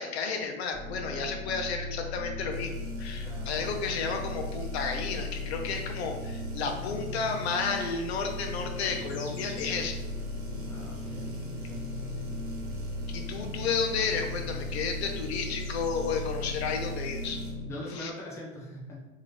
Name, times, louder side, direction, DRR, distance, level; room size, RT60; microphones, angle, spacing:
voice 1, 0.0-2.7 3.0-10.0 13.1-17.4 18.0-18.1, left 5 dB, 50° left, 4 dB, 0.7 m, -32 dB
sound 1, 0.7-17.6, left 2 dB, 30° right, 1.0 m, -37 dB
sound 2, 2.5-17.5, right 2 dB, 55° right, 1.2 m, -46 dB
voice 2, 3.2-3.5 10.6-11.9 15.1-15.4 17.6-19.0, left 1 dB, 5° left, -4 dB, 0.6 m, -42 dB
sound 3, 8.8-17.2, left 2 dB, 25° left, 1.1 m, -49 dB
3.6 x 2.8 x 3.3 m, 1.1 s
hypercardioid pair, 120°, 42 cm